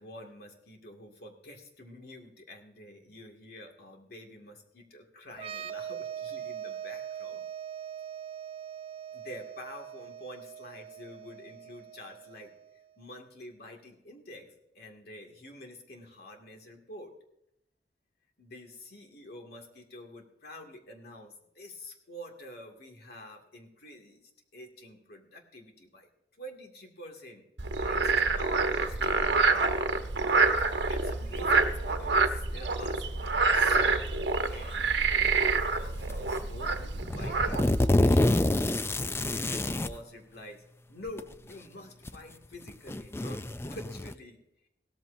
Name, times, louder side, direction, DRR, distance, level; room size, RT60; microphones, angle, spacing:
voice 1, 0.0-7.4 9.1-12.5 13.0-17.1 18.4-26.1 26.4-27.5 27.8-29.7 30.9-33.0 33.5-38.5 39.2-40.6 40.9-44.4, left 1 dB, 60° left, 2 dB, 2.2 m, -48 dB
sound 1, 5.3-12.8, right 9 dB, 30° right, 0.7 m, -41 dB
Frog, 27.6-37.9, right 4 dB, 75° right, 1.0 m, -27 dB
sound 2, 36.1-36.4 37.0-40.0 41.1-41.2 42.1-42.2 42.7-44.1, left 1 dB, 15° left, 0.4 m, -27 dB
17.0 x 13.5 x 2.7 m, 0.81 s
head